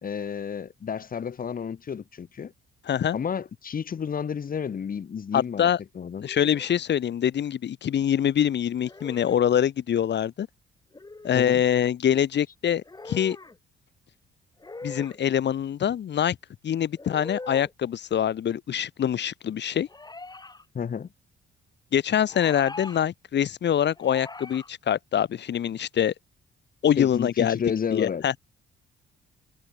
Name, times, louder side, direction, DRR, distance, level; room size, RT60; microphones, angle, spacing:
voice 1, 0.0-2.5 3.1-6.2 11.3-11.6 20.7-21.1 27.0-28.2, left 7 dB, 45° left, 3.0 m, -31 dB
voice 2, 2.9-3.2 5.3-5.8 6.2-10.5 11.2-13.4 14.8-16.4 16.6-19.9 21.9-26.1 26.8-27.6 27.9-28.4, left 9 dB, 60° left, 4.0 m, -24 dB
sound 1, 6.2-6.8 8.8-9.4 10.9-11.5 12.8-13.6 14.6-15.2 17.0-17.7 19.9-20.6 22.2-23.0 24.0-24.7, left 3 dB, 20° left, 7.5 m, -41 dB
cardioid pair, 90°, 20 cm